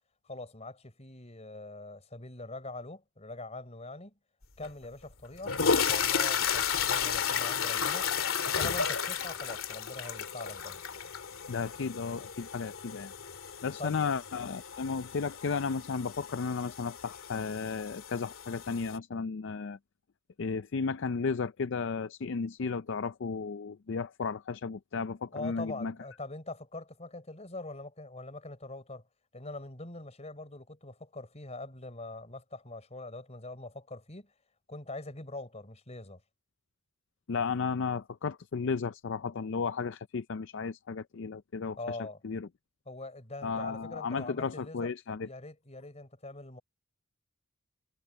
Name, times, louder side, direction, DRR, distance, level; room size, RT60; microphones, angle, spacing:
voice 1, 0.2-4.1 4.6-8.1 8.5-10.8 13.8-14.1 25.3-29.0 29.3-34.3 34.7-36.2 41.8-42.2 42.9-44.9 45.2-46.6, left 2 dB, 30° left, 4.2 m, -43 dB
sound 1, 4.6-4.7 5.3-19.0, left 7 dB, 80° left, 2.4 m, -33 dB
voice 2, 11.5-13.1 13.6-19.8 20.4-25.9 37.3-42.0 42.2-42.5 43.4-45.3, left 5 dB, 60° left, 0.5 m, -34 dB
head